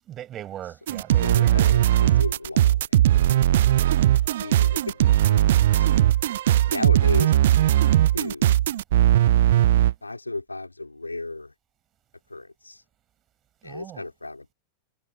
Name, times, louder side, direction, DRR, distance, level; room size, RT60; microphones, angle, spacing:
voice 1, 0.1-1.8 13.6-14.0, right 11 dB, 30° right, 5.2 m, -39 dB
sound 1, 0.9-9.9, right 13 dB, 60° right, 0.6 m, -19 dB
voice 2, 1.2-3.6 4.4-6.1 6.7-8.6 10.0-11.5 12.3-12.8 13.6-14.5, left 2 dB, 85° left, 3.3 m, -35 dB
figure-of-eight pair, 90°, 0 cm